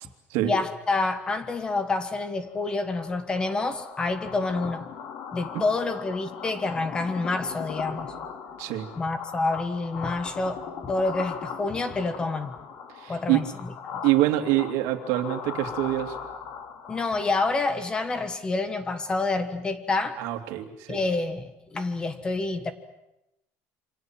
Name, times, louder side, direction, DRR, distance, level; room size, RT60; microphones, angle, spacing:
voice 1, 0.4-4.9 5.3-8.1 9.0-12.5 13.1-14.0 16.9-20.2 20.9-22.7, left 3 dB, 15° left, 11 dB, 1.4 m, -28 dB
sound 1, 2.6-17.9, left 7 dB, 50° left, 2.7 m, -39 dB
voice 2, 13.0-13.4 14.0-16.2 20.2-21.0, right 15 dB, 70° right, 6 dB, 2.8 m, -25 dB
28.0 x 25.5 x 7.6 m, 0.88 s
cardioid pair, 170°, 5 cm